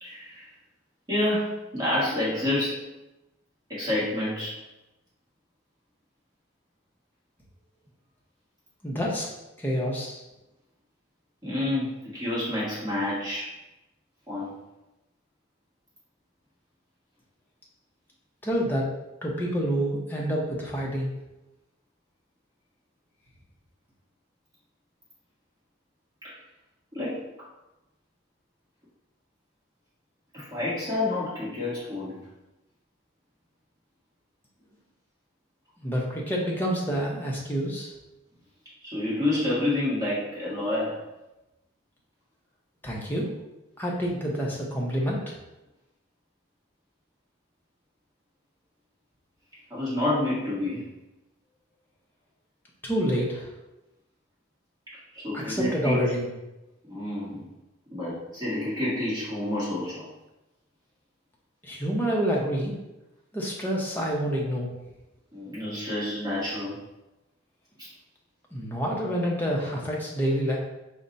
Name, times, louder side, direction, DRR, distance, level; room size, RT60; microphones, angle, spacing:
voice 1, 0.0-0.5 1.1-2.8 3.7-4.5 11.4-13.5 14.3-14.5 26.2-26.3 26.9-27.2 30.3-32.1 38.8-41.0 49.7-50.8 55.1-56.0 56.9-57.4 57.9-60.0 65.3-66.7, left 1 dB, 20° right, -9 dB, 1.4 m, -28 dB
voice 2, 8.8-9.3 9.6-10.2 18.4-18.9 19.2-21.1 35.8-37.9 42.8-43.3 43.8-45.4 52.8-53.5 55.3-56.3 61.6-62.7 63.3-64.7 68.5-70.6, equal, 10° left, -3 dB, 0.7 m, -27 dB
4.9 x 2.1 x 4.0 m, 0.98 s
head